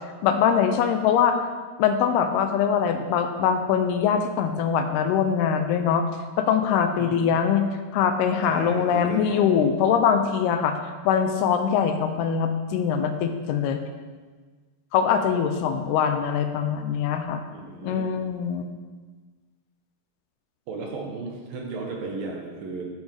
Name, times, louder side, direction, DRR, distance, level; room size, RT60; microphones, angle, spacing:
voice 1, 0.2-1.4 1.8-6.1 6.4-7.6 7.9-10.8 11.1-13.8 14.9-17.4 17.8-18.7, left 7 dB, 85° left, 7 dB, 2.5 m, -22 dB
voice 2, 7.0-7.3 8.5-9.6 17.5-18.1 20.7-22.9, right 3 dB, 70° right, 0 dB, 2.6 m, -35 dB
12.0 x 7.4 x 3.5 m, 1.4 s
omnidirectional pair, 4.7 m